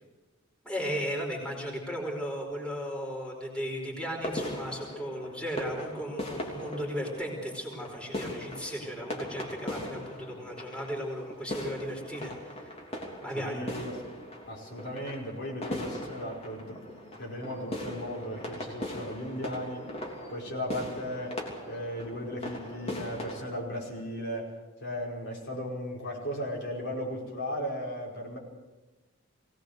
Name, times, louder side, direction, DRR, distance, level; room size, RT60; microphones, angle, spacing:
voice 1, 0.6-12.9 13.2-13.6, equal, 5° left, -2 dB, 4.7 m, -36 dB
sound 1, 4.1-23.5, left 1 dB, 30° left, 3.2 m, -40 dB
voice 2, 13.3-14.0 14.5-19.9 20.3-21.4 21.7-24.5 24.8-28.4, equal, 55° left, -2 dB, 5.2 m, -36 dB
22.5 x 18.0 x 6.6 m, 1.1 s
head